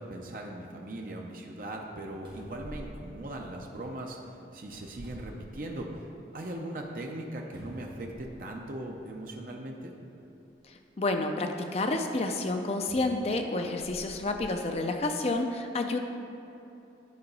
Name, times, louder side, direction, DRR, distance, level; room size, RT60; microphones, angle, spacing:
voice 1, 0.0-6.1 6.3-10.0, right 1 dB, 50° right, 0 dB, 0.6 m, -39 dB
sound 1, 2.2-3.9 4.6-6.0 6.5-6.6 7.5-8.7 9.6-9.7 12.9-14.5 15.2-15.3, equal, 25° right, 1.8 m, -48 dB
voice 2, 11.0-16.0, left 2 dB, 35° left, 5 dB, 0.4 m, -29 dB
9.5 x 3.9 x 5.3 m, 3.0 s
head